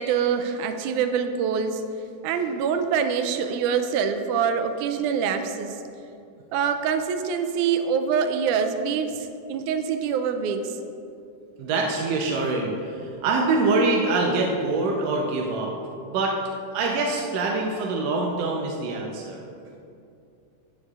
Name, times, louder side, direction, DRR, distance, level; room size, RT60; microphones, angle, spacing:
voice 1, 0.0-1.8 2.2-5.8 6.5-10.8, right 7 dB, 90° right, 7 dB, 2.1 m, -25 dB
voice 2, 11.6-15.7 16.0-16.4 16.7-19.4, right 3 dB, 70° right, -1 dB, 1.6 m, -24 dB
13.0 x 9.2 x 2.4 m, 2.5 s
omnidirectional pair, 3.5 m